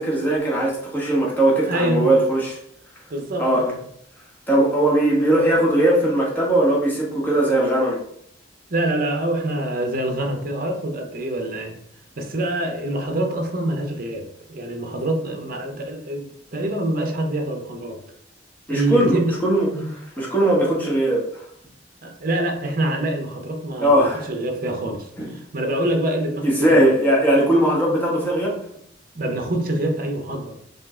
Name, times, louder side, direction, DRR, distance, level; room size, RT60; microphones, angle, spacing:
voice 1, 0.0-2.6 3.4-3.7 4.5-8.0 18.7-21.4 23.8-24.3 25.2-25.3 26.4-28.6, right 1 dB, 10° left, -4 dB, 1.3 m, -19 dB
voice 2, 1.7-2.1 3.1-3.8 8.7-11.7 12.2-18.0 18.7-19.3 19.7-19.9 22.0-26.9 29.1-30.6, right 1 dB, 50° right, 4 dB, 0.8 m, -25 dB
5.2 x 2.5 x 3.7 m, 0.70 s
head